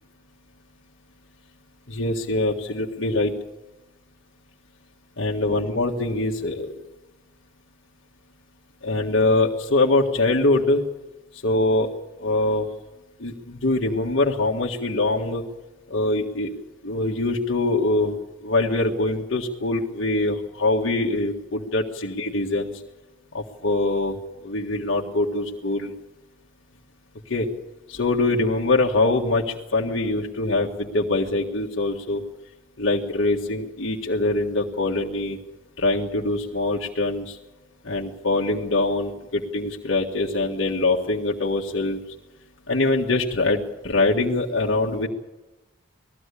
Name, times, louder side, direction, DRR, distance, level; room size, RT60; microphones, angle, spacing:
voice 1, 1.9-3.3 5.2-6.7 8.8-10.8 11.3-11.9 12.2-12.7 13.2-15.4 15.9-16.5 16.8-22.7 23.3-24.2 24.4-25.9 27.3-27.5 27.9-32.2 32.8-35.4 35.8-37.4 37.8-42.0 42.7-45.1, left 2 dB, 70° left, -1 dB, 1.8 m, -23 dB
20.0 x 15.5 x 8.4 m, 1.1 s
head